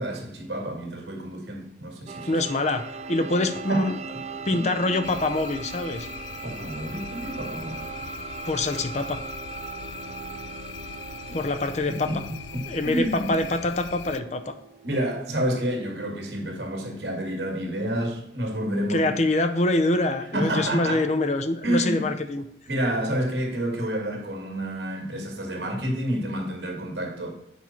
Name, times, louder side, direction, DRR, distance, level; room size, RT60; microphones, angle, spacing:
voice 1, 0.0-2.4 3.7-4.2 4.5-4.6 6.4-7.9 11.3-11.4 11.9-12.2 12.5-13.3 14.8-19.1 20.3-21.0 21.6-22.0 22.7-27.3, right 1 dB, 80° right, 2.1 m, -29 dB
sound 1, 2.1-17.7, right 5 dB, 35° right, 0.3 m, -40 dB
voice 2, 2.3-4.0 4.5-6.1 8.5-9.2 11.3-12.1 12.7-14.5 18.9-22.4, left 2 dB, 40° left, 0.6 m, -25 dB
sound 2, 5.0-14.2, left 8 dB, 90° left, 0.4 m, -41 dB
8.6 x 5.7 x 4.4 m
head